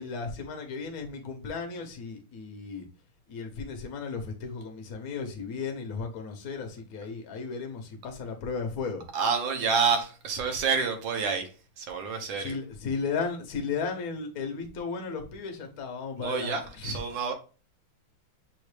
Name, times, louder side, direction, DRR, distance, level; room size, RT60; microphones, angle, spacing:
voice 1, 0.0-2.8 3.3-9.0 12.4-17.0, left 5 dB, 55° left, 1.2 m, -35 dB
voice 2, 9.1-11.5 11.8-12.6 16.2-17.3, right 5 dB, 65° right, 1.6 m, -28 dB
6.3 x 2.6 x 3.2 m
omnidirectional pair, 2.3 m